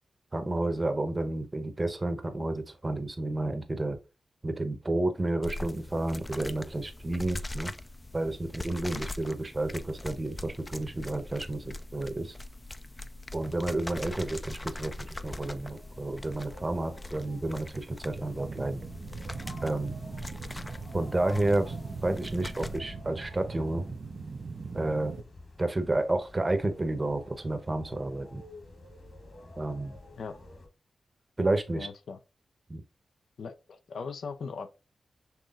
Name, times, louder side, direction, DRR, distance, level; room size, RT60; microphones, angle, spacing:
voice 1, 0.3-4.0 4.4-7.7 8.1-12.3 13.3-18.9 19.6-20.0 20.9-21.8 22.0-23.8 24.7-25.1 25.6-28.4 29.6-30.0 31.4-31.9 32.7-32.8, right 2 dB, 30° right, 0.9 m, -31 dB
sound 1, 5.4-22.8, left 2 dB, 20° left, 0.4 m, -42 dB
sound 2, 14.0-30.7, left 2 dB, 65° left, 2.0 m, -50 dB
sound 3, 17.7-25.2, right 4 dB, 60° right, 0.5 m, -41 dB
voice 2, 31.7-32.2 33.4-34.7, left 5 dB, 80° left, 0.5 m, -39 dB
5.8 x 3.1 x 2.5 m
cardioid pair, 55°, 0 cm